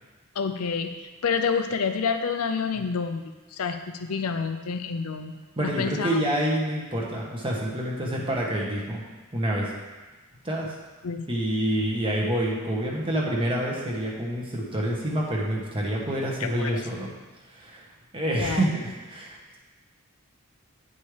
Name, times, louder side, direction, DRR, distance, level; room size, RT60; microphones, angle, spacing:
voice 1, 0.4-6.2 11.0-11.3 16.4-16.7 18.4-18.7, left 5 dB, 75° left, 8 dB, 0.6 m, -29 dB
voice 2, 5.6-9.0 9.3-9.7 10.4-10.7 11.1-17.1 17.5-17.8 18.1-18.7 19.1-19.4, right 1 dB, 25° right, -3 dB, 1.3 m, -27 dB
9.3 x 5.4 x 3.3 m, 1.3 s
head